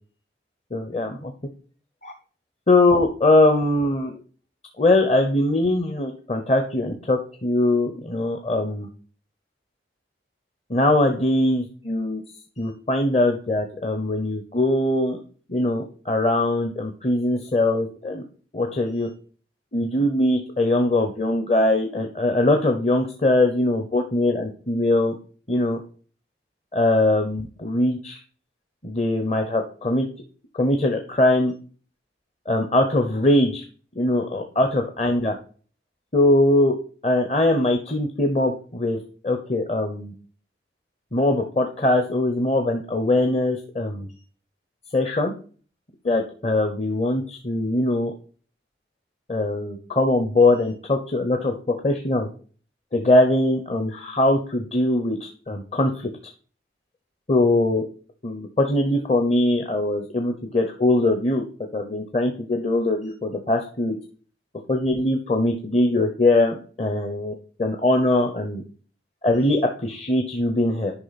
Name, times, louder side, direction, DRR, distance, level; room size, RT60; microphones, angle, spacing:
voice 1, 0.7-1.3 2.0-2.1 2.7-4.2 4.8-8.9 10.7-12.2 12.6-15.2 15.5-18.2 18.5-19.1 19.7-25.1 25.5-25.8 26.7-28.2 28.8-30.1 30.5-31.5 32.5-33.6 34.0-35.3 36.1-36.7 37.0-40.1 41.1-44.1 44.9-45.3 46.0-48.1 49.3-52.3 52.9-56.1 57.3-57.8 58.2-61.4 61.7-64.0 64.7-67.3 67.6-68.6 69.2-70.9, left 2 dB, 35° left, 4 dB, 0.7 m, -21 dB
9.7 x 5.4 x 4.1 m, 0.41 s
head